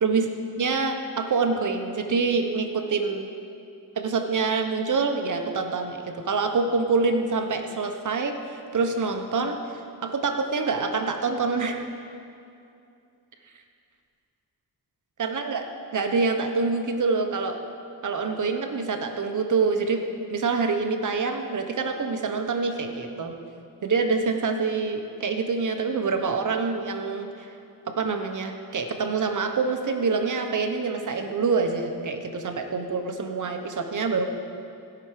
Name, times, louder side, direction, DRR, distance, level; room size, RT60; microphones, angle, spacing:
voice 1, 0.0-3.3 3.9-11.8 15.2-15.7 15.9-17.6 18.0-20.0 20.3-23.3 23.8-27.5 27.9-34.2, right 4 dB, 55° right, 5 dB, 1.2 m, -26 dB
16.5 x 6.0 x 5.1 m, 2.5 s
cardioid pair, 70°, 37 cm